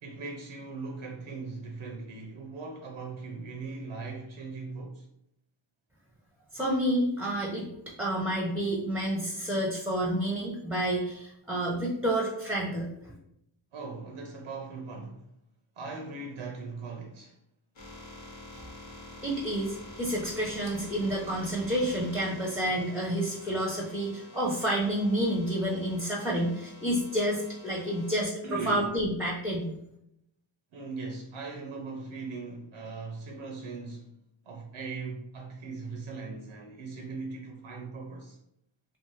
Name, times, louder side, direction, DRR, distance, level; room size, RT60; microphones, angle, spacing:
voice 1, 0.0-5.1 13.7-15.3 15.8-17.4 28.4-28.9 30.7-34.1 34.4-38.4, right 3 dB, 70° right, 0.6 m, -39 dB
voice 2, 6.5-7.6 8.0-13.1 18.5-18.6 19.2-29.7, right 1 dB, 5° right, 0.6 m, -29 dB
sound 1, 17.8-28.2, left 1 dB, 60° left, 1.0 m, -48 dB
2.6 x 2.3 x 3.1 m
wide cardioid pair, 60°, 50 cm